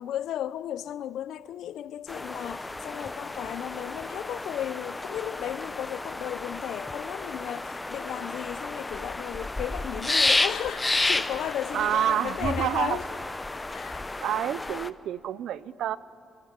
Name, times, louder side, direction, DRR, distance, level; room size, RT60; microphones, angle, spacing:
voice 1, 0.0-13.0 13.7-14.0 14.7-14.8, left 11 dB, 80° left, 0.5 m, -35 dB
sound 1, 2.1-14.9, left 2 dB, 15° left, 0.7 m, -31 dB
voice 2, 11.7-13.0 14.2-16.0, right 10 dB, 75° right, 0.6 m, -28 dB
27.5 x 12.0 x 8.1 m
cardioid pair, 90°, 0 cm